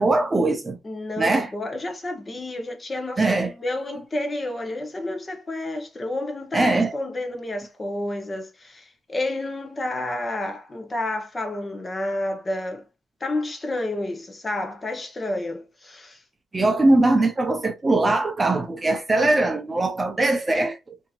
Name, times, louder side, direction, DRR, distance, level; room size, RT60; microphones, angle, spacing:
voice 1, 0.0-0.8 1.2-1.5 3.2-3.5 6.5-6.9 16.5-21.0, right 2 dB, 25° right, 0.6 m, -21 dB
voice 2, 0.8-12.8 13.2-16.2, left 1 dB, 25° left, 0.9 m, -30 dB
2.8 x 2.7 x 2.4 m
cardioid pair, 90°, 0 cm